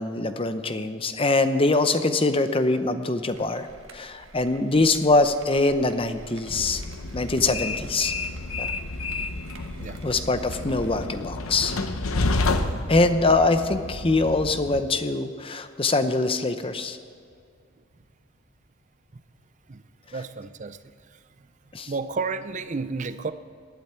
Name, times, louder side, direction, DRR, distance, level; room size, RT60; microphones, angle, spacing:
voice 1, 0.0-3.7 3.9-6.8 7.1-8.1 8.6-8.7 10.0-11.8 12.9-17.0 21.7-21.9, left 3 dB, 25° left, 10 dB, 0.7 m, -23 dB
sound 1, 3.3-11.1, right 1 dB, 65° right, 1.6 m, -46 dB
Train, 6.5-14.8, left 2 dB, 80° left, 0.9 m, -30 dB
voice 2, 20.1-20.9 21.9-23.3, right 4 dB, 35° right, 12 dB, 0.5 m, -31 dB
19.0 x 12.0 x 4.5 m, 2.3 s
head